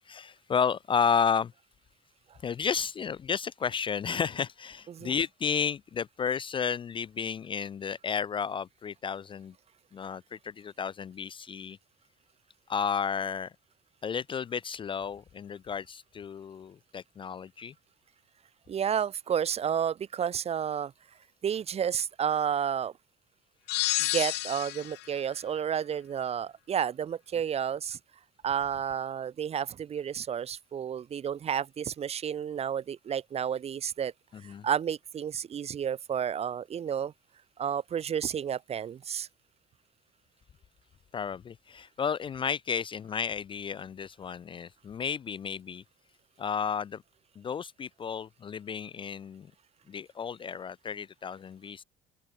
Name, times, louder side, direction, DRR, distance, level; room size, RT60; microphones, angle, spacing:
voice 1, 0.1-1.5 2.4-9.5 9.9-11.8 12.7-13.5 14.0-17.7 34.3-34.7 41.1-45.8 46.4-47.0 47.4-49.5 49.9-51.8, left 7 dB, 30° left, 0.3 m, -32 dB
voice 2, 18.7-20.9 21.4-22.9 24.0-28.0 28.4-34.1 34.4-37.1 37.6-39.3, right 8 dB, 40° right, 0.6 m, -31 dB
sound 1, 23.7-25.1, left 19 dB, 80° left, 0.9 m, -30 dB
open air
cardioid pair, 110°, 17 cm